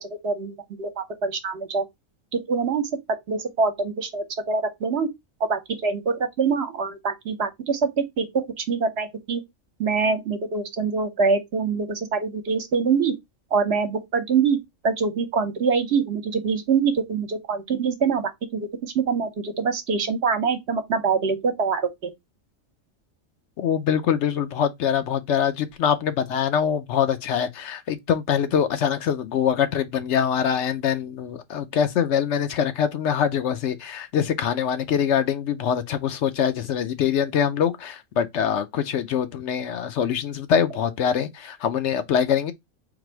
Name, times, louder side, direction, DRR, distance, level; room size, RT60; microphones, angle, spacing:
voice 1, 0.0-1.8 2.3-2.9 3.3-5.1 5.5-9.4 9.8-13.1 13.5-14.6 14.8-22.1, right 5 dB, 60° right, 1.0 m, -24 dB
voice 2, 23.6-42.5, left 8 dB, 70° left, 0.9 m, -24 dB
4.0 x 2.6 x 4.4 m
omnidirectional pair, 1.3 m